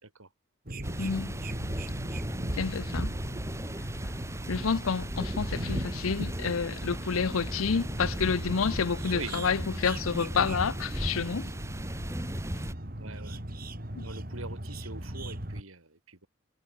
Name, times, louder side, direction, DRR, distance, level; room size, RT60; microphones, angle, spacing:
sound 1, 0.7-15.6, right 1 dB, 45° right, 3.2 m, -38 dB
sound 2, 0.8-12.7, right 1 dB, 15° right, 2.5 m, -37 dB
voice 1, 1.0-1.4 2.6-3.1 4.5-11.5 14.0-14.1, left 5 dB, 85° left, 0.6 m, -29 dB
voice 2, 13.0-13.4 14.0-16.3, right 3 dB, 85° right, 4.1 m, -43 dB
head